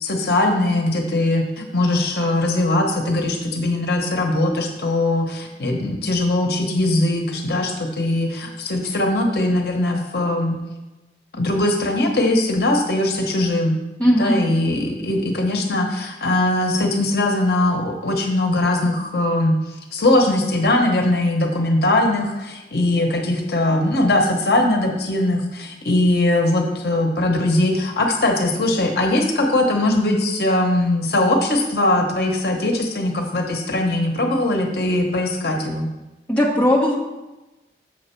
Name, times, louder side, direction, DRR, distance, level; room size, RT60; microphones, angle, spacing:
voice 1, 0.0-10.6 11.3-13.8 14.2-19.6 19.9-35.9, left 1 dB, 60° left, 2 dB, 1.0 m, -20 dB
voice 2, 14.0-14.4 36.3-37.0, equal, 5° left, -4 dB, 1.3 m, -17 dB
7.5 x 6.5 x 4.5 m, 1.1 s
head